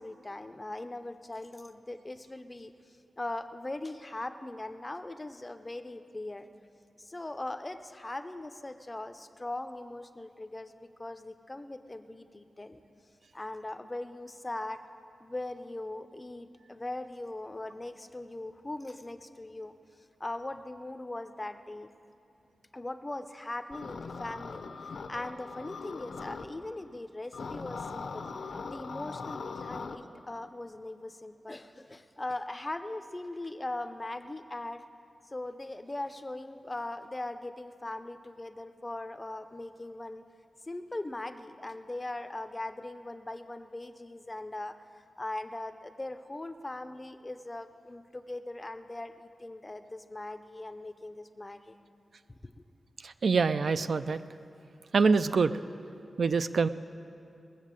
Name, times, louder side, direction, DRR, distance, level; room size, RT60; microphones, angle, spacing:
voice 1, 0.0-6.5 7.0-12.8 13.3-14.8 15.2-19.7 20.2-21.9 22.7-24.6 25.1-28.3 28.7-34.8 35.2-40.2 40.6-51.8 52.4-52.6, left 2 dB, 20° left, 9 dB, 0.5 m, -40 dB
sound 1, 23.7-26.5 27.3-30.0, left 4 dB, 70° left, 0.7 m, -40 dB
voice 2, 53.0-54.2 54.9-55.6 56.2-56.7, right 4 dB, 60° right, 12 dB, 0.3 m, -25 dB
20.0 x 7.3 x 7.4 m, 2.6 s
wide cardioid pair, 170°, 0 cm